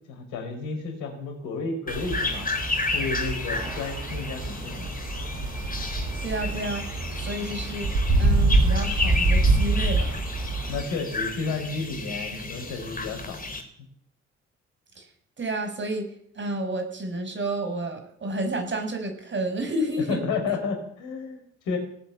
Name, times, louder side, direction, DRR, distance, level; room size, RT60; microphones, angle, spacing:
voice 1, 0.0-2.5 2.8-4.9 10.7-13.4 20.1-21.8, left 4 dB, 65° left, 3 dB, 4.8 m, -32 dB
sound 1, 1.9-13.6, left 3 dB, 25° left, 3.9 m, -32 dB
sound 2, 1.9-10.8, right 2 dB, 60° right, 7.0 m, -26 dB
voice 2, 6.2-7.9 8.2-10.2 15.0-15.1 15.4-20.2, right 1 dB, 35° right, 6 dB, 5.9 m, -30 dB
18.5 x 9.3 x 8.2 m, 0.68 s
figure-of-eight pair, 40°, 32 cm